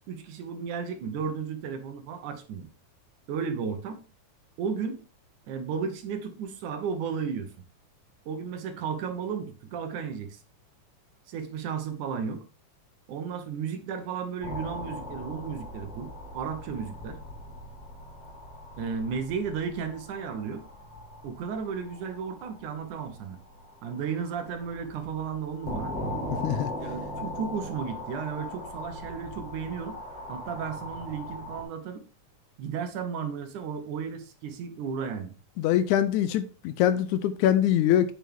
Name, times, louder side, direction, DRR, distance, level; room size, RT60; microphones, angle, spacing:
voice 1, 0.1-2.7 3.3-4.0 4.6-5.0 5.5-7.5 8.3-10.4 11.3-12.4 13.1-17.2 18.8-20.6 21.2-23.4 23.8-25.9 26.8-30.0 30.3-32.0 32.6-35.3, right 6 dB, 75° right, 2.5 m, -34 dB
sound 1, 14.4-31.6, left 1 dB, 50° left, 4.4 m, -40 dB
voice 2, 35.6-38.1, left 11 dB, 80° left, 1.9 m, -23 dB
9.2 x 6.3 x 3.5 m
omnidirectional pair, 3.7 m